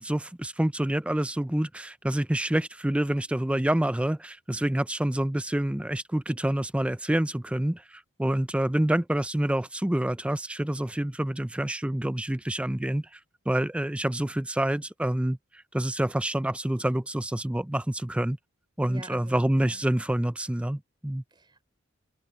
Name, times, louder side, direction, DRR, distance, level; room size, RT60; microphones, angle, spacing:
voice 1, 0.0-13.2 13.5-18.4 18.8-21.2, right 1 dB, 5° right, 0.3 m, -27 dB
voice 2, 18.9-19.9 21.3-21.6, right 1 dB, 20° right, 3.5 m, -46 dB
head